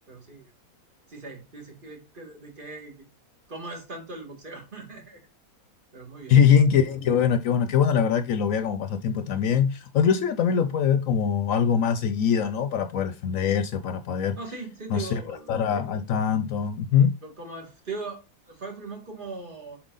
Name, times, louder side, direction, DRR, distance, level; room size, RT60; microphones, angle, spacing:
voice 1, 0.1-0.5 1.1-3.1 3.5-5.2 5.9-6.4 14.4-15.6 17.2-19.8, right 3 dB, 35° right, 2.1 m, -39 dB
voice 2, 6.3-14.4 14.9-17.1, left 7 dB, 70° left, 1.0 m, -23 dB
7.4 x 4.6 x 3.9 m
omnidirectional pair, 1.5 m